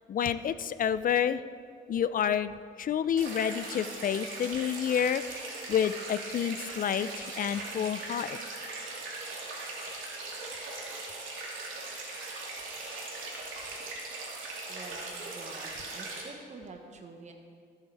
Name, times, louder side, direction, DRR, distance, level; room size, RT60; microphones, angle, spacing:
voice 1, 0.1-1.4 1.9-2.5 2.8-8.4, left 8 dB, 45° left, 14 dB, 0.4 m, -29 dB
sound 1, 3.2-16.2, right 3 dB, 80° right, 2.3 m, -40 dB
voice 2, 14.7-17.3, right 3 dB, 35° right, 3 dB, 1.1 m, -47 dB
14.0 x 8.1 x 3.4 m, 2.1 s
cardioid pair, 90°, 20 cm